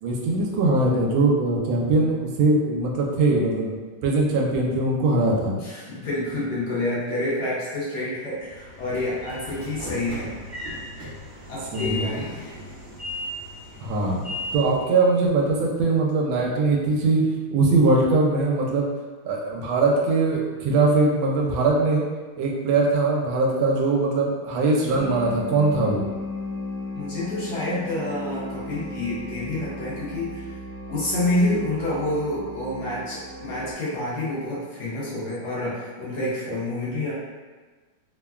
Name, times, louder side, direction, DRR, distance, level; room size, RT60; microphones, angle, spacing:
voice 1, 0.0-3.8 4.0-5.6 11.7-12.2 13.8-14.2 14.5-17.2 17.5-18.9 19.2-22.0 22.4-26.1, right 3 dB, 85° right, -1 dB, 1.3 m, -21 dB
voice 2, 5.6-10.3 11.5-12.6 26.9-30.4 30.9-37.1, left 1 dB, 65° left, -8 dB, 1.2 m, -28 dB
Train / Sliding door, 8.4-14.9, left 1 dB, 55° right, 0.6 m, -36 dB
sound 1, 24.9-33.7, left 2 dB, 80° left, 1.5 m, -36 dB
3.4 x 2.1 x 2.3 m, 1.4 s
omnidirectional pair, 2.1 m